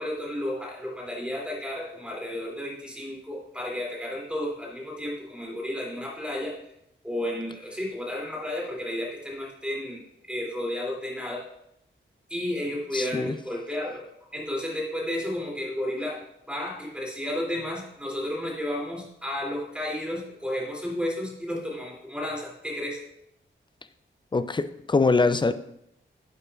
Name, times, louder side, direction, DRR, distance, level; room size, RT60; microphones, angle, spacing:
voice 1, 0.0-6.6 7.0-11.5 12.3-14.0 14.3-23.0, left 1 dB, 5° right, -3 dB, 2.7 m, -32 dB
voice 2, 12.9-13.4 24.3-25.5, left 3 dB, 25° left, 12 dB, 0.4 m, -23 dB
11.0 x 8.2 x 2.4 m, 0.78 s
wide cardioid pair, 100°, 21 cm